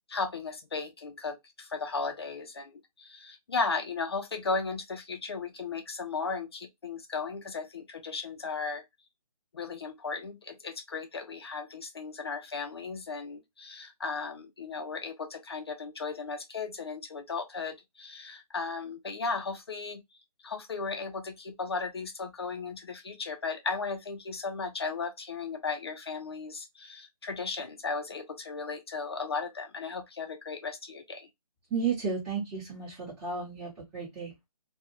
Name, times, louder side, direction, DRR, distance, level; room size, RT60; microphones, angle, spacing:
voice 1, 0.1-8.8 9.5-20.0 20.4-31.3, left 4 dB, 40° left, 0.4 m, -36 dB
voice 2, 31.7-34.4, right 5 dB, 5° right, 0.8 m, -33 dB
2.4 x 2.2 x 2.9 m
figure-of-eight pair, 145°, 20 cm